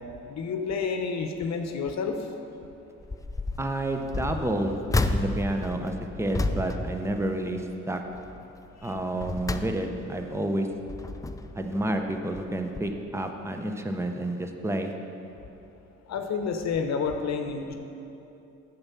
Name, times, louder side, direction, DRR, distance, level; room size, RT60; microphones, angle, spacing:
voice 1, 0.3-2.3 8.8-8.9 16.1-17.7, left 5 dB, 65° left, 5 dB, 0.9 m, -29 dB
sound 1, 3.0-3.7 4.1-7.8 8.1-8.4 8.9-10.2 10.7-11.7 12.3-12.5 12.8-12.9, left 2 dB, 10° left, 0.4 m, -31 dB
voice 2, 3.6-4.8 5.1-8.0 8.8-10.7 11.5-14.9, right 1 dB, 10° right, 4 dB, 0.8 m, -30 dB
8.7 x 7.4 x 5.7 m, 2.9 s
cardioid pair, 90°, 30 cm